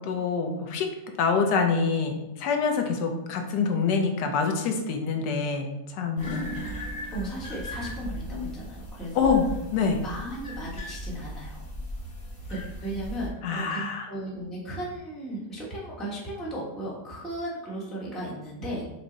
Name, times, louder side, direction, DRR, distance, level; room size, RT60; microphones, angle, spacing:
voice 1, 0.0-6.4 9.1-9.4 9.7-10.0 13.4-14.1, left 5 dB, 80° left, 4 dB, 1.2 m, -26 dB
sound 1, 6.2-13.3, equal, 30° left, 0.9 m, -37 dB
voice 2, 7.1-9.4 10.0-11.7 12.5-18.8, right 1 dB, ahead, -5 dB, 0.7 m, -35 dB
6.1 x 2.1 x 3.8 m, 0.94 s
omnidirectional pair, 1.8 m